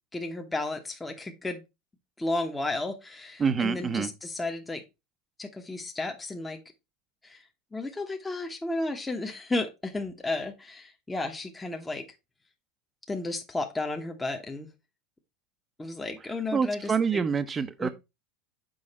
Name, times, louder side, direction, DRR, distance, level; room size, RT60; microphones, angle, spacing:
voice 1, 0.1-1.6 2.2-4.8 5.4-6.6 7.2-7.4 7.7-12.1 13.1-14.7 15.8-17.2 17.8-17.9, left 2 dB, 10° left, 1.1 m, -33 dB
voice 2, 3.4-4.1 16.5-17.9, right 6 dB, 25° right, 0.8 m, -26 dB
6.4 x 4.8 x 4.2 m
supercardioid pair, 105°, 0 cm